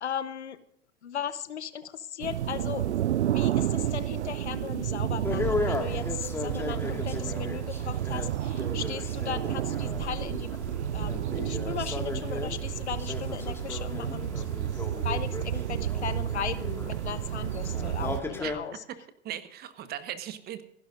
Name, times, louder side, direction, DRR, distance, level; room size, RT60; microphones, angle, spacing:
voice 1, 0.0-0.6 1.0-10.6 10.9-18.8, left 9 dB, 70° left, 14 dB, 1.1 m, -37 dB
sound 1, 2.2-18.2, right 12 dB, 75° right, 0.5 m, -31 dB
sound 2, 5.2-18.6, left 2 dB, 5° left, 2.1 m, -36 dB
voice 2, 18.9-20.6, right 11 dB, 25° right, 11 dB, 1.4 m, -38 dB
27.0 x 11.5 x 2.6 m, 0.68 s
figure-of-eight pair, 95°, 35 cm